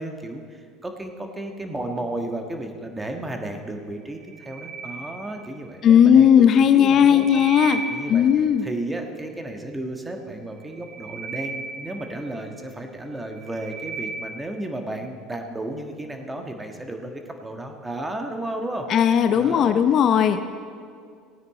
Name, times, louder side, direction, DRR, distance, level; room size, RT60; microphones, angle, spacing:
voice 1, 0.0-7.4 7.9-8.3 8.6-20.0, right 1 dB, 15° right, 4 dB, 1.5 m, -33 dB
sound 1, 4.2-5.8 6.8-8.6 10.6-12.7 13.2-14.7, right 4 dB, 60° right, 0.9 m, -36 dB
voice 2, 5.8-7.8 8.1-8.7 18.9-20.4, left 8 dB, 50° left, 10 dB, 0.6 m, -16 dB
17.0 x 9.3 x 4.3 m, 2.2 s
hypercardioid pair, 75°, 0 cm